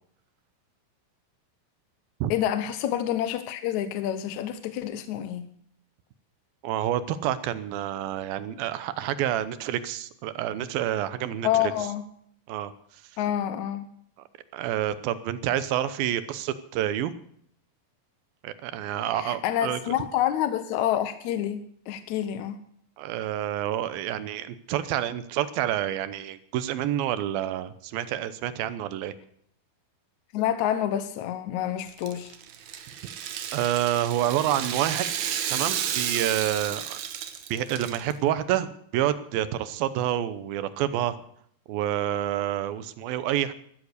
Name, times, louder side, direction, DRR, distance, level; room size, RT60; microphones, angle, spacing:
voice 1, 2.3-5.5 11.4-12.0 13.2-13.9 19.2-22.6 30.3-32.3, left 11 dB, 75° left, 1.8 m, -28 dB
voice 2, 6.6-11.6 12.5-13.0 14.5-17.1 18.4-19.8 23.0-29.1 33.5-37.0 37.5-41.2 41.7-43.5, right 11 dB, 85° right, 2.7 m, -28 dB
Rattle (instrument), 31.9-38.1, right 9 dB, 65° right, 2.1 m, -32 dB
13.5 x 13.0 x 6.7 m
omnidirectional pair, 4.1 m